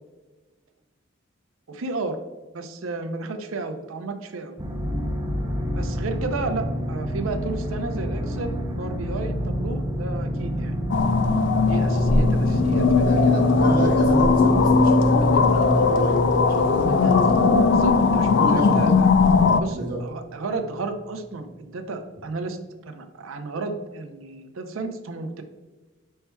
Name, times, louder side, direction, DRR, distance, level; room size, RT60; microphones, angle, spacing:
voice 1, 1.7-2.2 2.5-4.6 5.8-10.7 11.7-13.2 17.7-19.1 19.6-25.4, right 3 dB, 80° right, 7 dB, 0.5 m, -32 dB
sound 1, 4.6-20.2 20.7-20.8, equal, 15° right, 0.5 m, -27 dB
sound 2, 10.9-19.6, left 4 dB, 60° left, 0.3 m, -19 dB
voice 2, 12.9-16.2 16.5-17.6 18.2-18.8 19.7-20.0, right 1 dB, 45° right, -1 dB, 1.0 m, -29 dB
5.4 x 4.4 x 2.2 m, 1.2 s
head